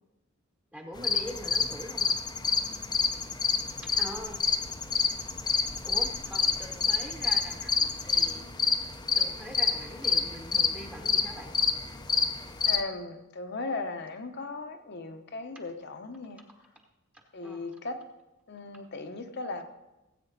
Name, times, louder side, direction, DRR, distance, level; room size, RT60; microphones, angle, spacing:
voice 1, 0.7-2.1 3.8-4.4 5.8-8.4 9.2-11.5 17.1-17.6, equal, 5° right, 1.0 m, -43 dB
sound 1, 1.0-12.8, left 5 dB, 20° left, 0.6 m, -28 dB
voice 2, 12.7-16.4 17.3-18.0 18.5-19.7, left 3 dB, 50° left, 1.0 m, -37 dB
17.5 x 8.5 x 4.0 m
head